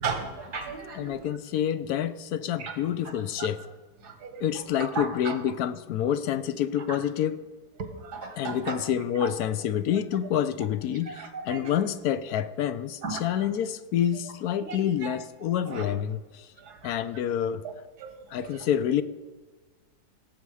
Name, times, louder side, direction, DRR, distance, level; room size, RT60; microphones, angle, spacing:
voice 1, 0.0-1.1 2.6-2.8 3.4-3.5 4.0-4.5 5.0-5.4 7.8-8.8 11.2-11.8 13.0-13.5 14.7-14.8 15.0-15.1 15.7-15.8 16.7-16.8 17.6-17.7 18.0-18.1, right 5 dB, 85° right, 2.1 m, -35 dB
voice 2, 0.9-3.6 4.4-7.4 8.3-16.5 16.8-17.7 18.3-19.0, left 10 dB, 75° left, 1.1 m, -28 dB
17.0 x 8.0 x 4.8 m
omnidirectional pair, 1.7 m